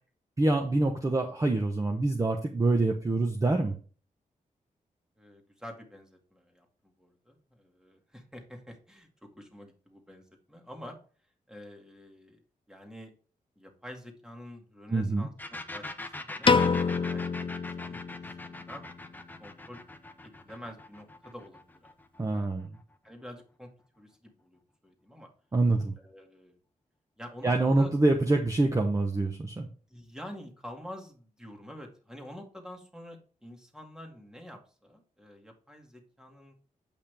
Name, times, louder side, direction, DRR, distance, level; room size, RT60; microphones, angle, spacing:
voice 1, 0.4-3.7 14.9-15.3 22.2-22.7 25.5-25.9 27.4-29.7, right 2 dB, 20° right, 4 dB, 1.0 m, -26 dB
voice 2, 5.2-11.0 11.5-12.4 12.7-13.1 13.6-18.8 19.4-19.8 20.2-21.9 22.3-22.5 23.0-23.7 24.0-25.3 26.0-26.6 27.2-27.9 29.9-36.5, left 1 dB, 5° right, 3 dB, 2.1 m, -48 dB
sound 1, 15.4-22.9, left 2 dB, 15° left, 0.9 m, -42 dB
Piano, 16.5-18.7, left 5 dB, 40° left, 0.6 m, -27 dB
8.6 x 5.6 x 3.4 m, 0.39 s
wide cardioid pair, 115°, 14 cm